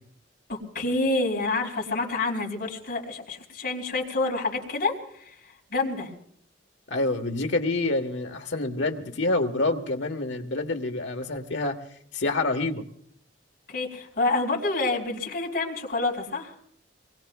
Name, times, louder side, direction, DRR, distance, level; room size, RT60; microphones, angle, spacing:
voice 1, 0.5-5.4 5.7-6.1 13.7-16.5, left 3 dB, 50° left, -2 dB, 4.0 m, -28 dB
voice 2, 6.9-11.8 12.1-12.8, left 2 dB, 70° left, 5 dB, 1.4 m, -27 dB
25.5 x 21.0 x 2.3 m, 0.66 s
head